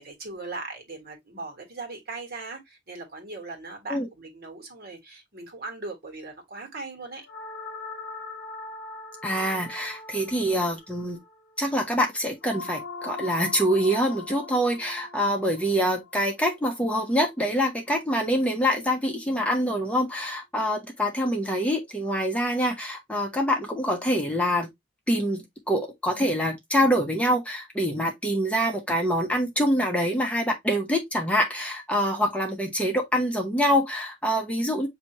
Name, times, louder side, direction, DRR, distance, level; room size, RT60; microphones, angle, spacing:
voice 1, 0.0-7.3, right 3 dB, 55° right, 1.6 m, -39 dB
sound 1, 7.3-17.5, left 3 dB, 60° left, 0.9 m, -41 dB
voice 2, 9.2-11.2 11.6-24.7 25.1-34.9, equal, 5° left, 0.7 m, -25 dB
5.9 x 2.8 x 2.9 m
head